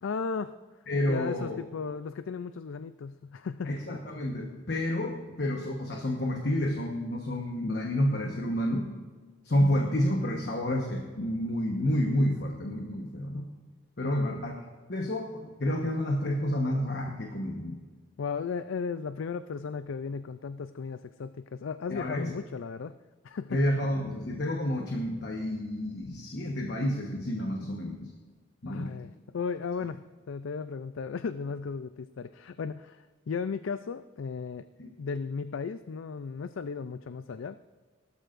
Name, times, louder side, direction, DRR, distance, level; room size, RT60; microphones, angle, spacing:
voice 1, 0.0-0.5 1.1-3.7 14.0-14.3 18.2-22.9 23.2-23.6 28.7-34.7 35.0-37.5, left 5 dB, 75° left, 12 dB, 0.4 m, -35 dB
voice 2, 0.9-1.6 3.7-8.9 9.4-13.5 14.0-14.5 14.9-17.8 21.9-22.3 23.5-28.1 28.6-28.9 34.8-34.9, left 1 dB, 55° left, 1 dB, 1.2 m, -29 dB
18.5 x 12.5 x 2.6 m, 1.4 s
head